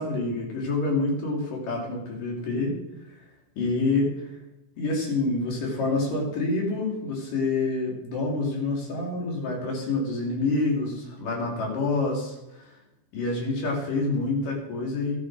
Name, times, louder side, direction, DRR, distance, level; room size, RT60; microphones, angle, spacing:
voice 1, 0.0-2.7 3.6-4.4 4.8-12.7 13.1-15.2, left 3 dB, 60° left, -1 dB, 4.3 m, -27 dB
13.5 x 12.5 x 4.7 m, 0.93 s
omnidirectional pair, 4.3 m